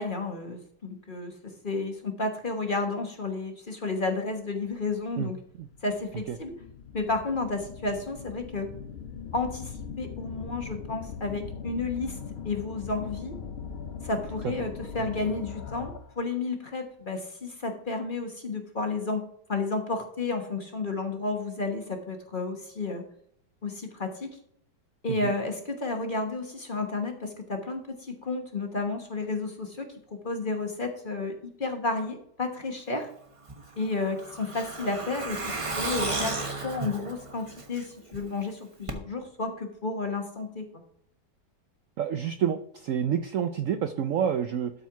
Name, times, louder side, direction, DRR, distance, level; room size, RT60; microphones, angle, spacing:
voice 1, 0.0-5.4 5.8-6.6 6.9-8.7 9.3-12.2 12.4-13.4 14.0-23.0 23.6-24.4 25.0-33.1 33.8-40.7, left 3 dB, 35° left, 4 dB, 1.2 m, -32 dB
sound 1, 4.8-4.9 5.6-16.2, left 7 dB, 55° left, 0.7 m, -40 dB
Truck, 33.5-38.2 38.5-38.6 38.9-39.0, right 3 dB, 25° right, 1.0 m, -33 dB
voice 2, 42.0-44.7, right 8 dB, 70° right, 9 dB, 0.8 m, -28 dB
12.5 x 4.5 x 4.6 m, 0.67 s
omnidirectional pair, 1.8 m